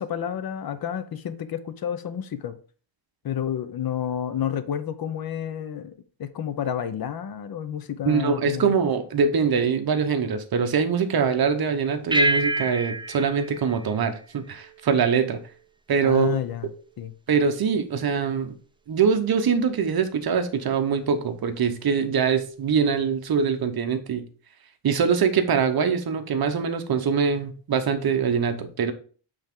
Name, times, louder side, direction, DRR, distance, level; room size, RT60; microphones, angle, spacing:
voice 1, 0.0-2.6 3.2-5.9 6.2-8.7 16.0-16.7 17.0-17.1, left 9 dB, 50° left, 12 dB, 0.6 m, -30 dB
voice 2, 8.1-15.4 15.9-16.4 17.3-18.5 18.9-24.3 24.8-28.9, right 6 dB, 50° right, 7 dB, 0.9 m, -23 dB
sound 1, 12.1-14.9, right 2 dB, 10° right, 0.3 m, -27 dB
8.0 x 3.5 x 3.6 m, 0.41 s
wide cardioid pair, 165°, 49 cm